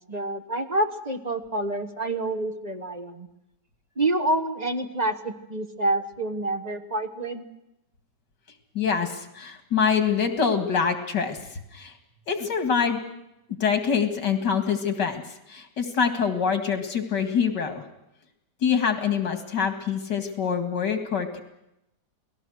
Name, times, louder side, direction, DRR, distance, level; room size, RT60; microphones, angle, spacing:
voice 1, 0.0-3.3 4.0-7.5, right 2 dB, 25° right, 6 dB, 1.2 m, -28 dB
voice 2, 8.7-11.9 12.3-13.0 13.6-15.2 15.5-17.8 18.6-21.4, left 6 dB, 80° left, 6 dB, 2.6 m, -25 dB
28.5 x 19.0 x 6.3 m, 0.86 s
omnidirectional pair, 1.8 m